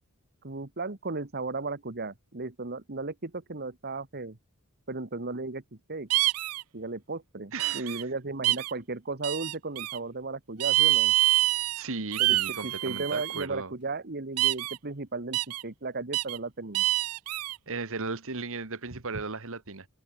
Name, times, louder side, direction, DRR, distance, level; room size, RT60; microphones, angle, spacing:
voice 1, 0.4-4.4 4.9-6.1 6.7-11.1 12.2-16.9, right 3 dB, 45° right, 1.6 m, -35 dB
sound 1, 6.1-6.6 7.6-8.0 8.4-8.7 9.2-10.0 10.6-11.8 12.1-13.4 14.4-14.8 15.3-15.6 16.1-16.4 16.7-17.6, right 17 dB, 85° right, 0.7 m, -26 dB
voice 2, 7.5-8.0 11.8-13.7 17.7-19.9, right 3 dB, 65° right, 1.9 m, -36 dB
head